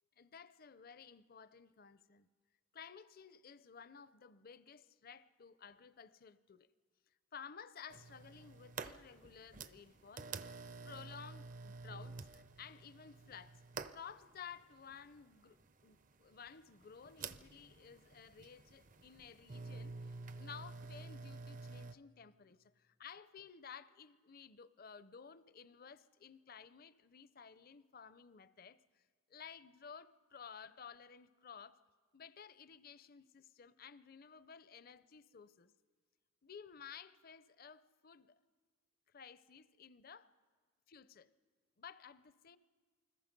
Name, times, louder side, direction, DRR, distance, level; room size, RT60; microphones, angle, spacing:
voice 1, 0.2-2.3 2.7-6.7 7.3-10.3 10.8-13.6 13.9-15.6 15.8-29.0 29.3-31.8 32.1-35.7 36.4-38.4 39.1-40.3 40.9-41.3 41.8-42.6, left 6 dB, 45° left, 0.5 m, -55 dB
sound 1, 7.9-21.9, right 4 dB, 40° right, 0.5 m, -49 dB
28.5 x 21.0 x 5.3 m
head